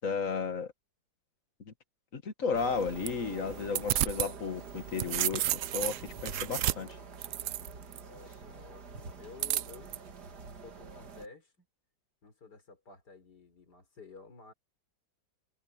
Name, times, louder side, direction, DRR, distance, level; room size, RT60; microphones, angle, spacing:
voice 1, 0.0-0.7 1.7-1.8 2.1-5.4 5.7-7.0, left 5 dB, 45° left, 2.1 m, -33 dB
sound 1, 2.5-11.3, right 4 dB, 65° right, 2.4 m, -47 dB
sound 2, 2.6-4.3 4.7-8.0 9.4-10.0, right 13 dB, 85° right, 0.7 m, -32 dB
voice 2, 8.1-9.9 10.6-11.7 12.2-14.5, left 4 dB, 65° left, 4.5 m, -52 dB
omnidirectional pair, 1.9 m